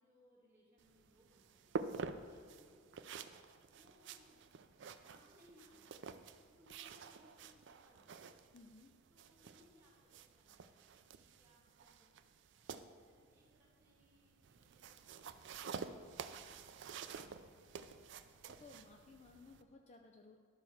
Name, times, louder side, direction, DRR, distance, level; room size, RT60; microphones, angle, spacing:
voice 1, 0.0-1.8 2.2-3.1 3.7-4.5 4.8-8.5 9.1-12.1 12.6-16.6 16.9-18.3, equal, 10° right, -6 dB, 2.3 m, -69 dB
sound 1, 0.8-19.6, right 5 dB, 60° right, 0.4 m, -50 dB
voice 2, 8.5-8.9 18.5-20.4, left 3 dB, 35° left, 4 dB, 0.4 m, -59 dB
11.0 x 4.5 x 6.3 m, 2.2 s
head